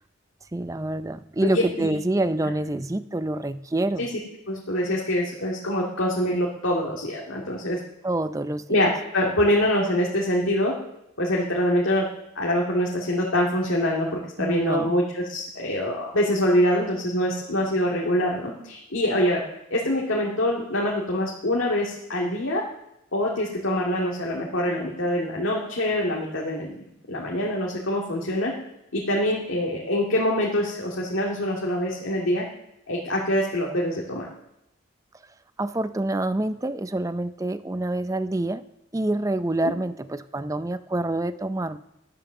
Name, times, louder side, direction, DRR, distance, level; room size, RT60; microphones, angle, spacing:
voice 1, 0.5-4.1 8.0-8.8 14.4-14.9 35.6-38.6 38.9-41.8, right 1 dB, 15° right, 12 dB, 0.4 m, -27 dB
voice 2, 1.4-1.9 4.0-4.1 4.5-7.8 8.7-10.7 11.2-12.0 12.4-19.4 19.7-22.6 23.1-26.8 27.1-28.5 28.9-32.4 32.9-34.3 39.6-39.7, left 1 dB, 80° left, -3 dB, 2.1 m, -24 dB
12.5 x 10.5 x 6.7 m, 0.85 s
head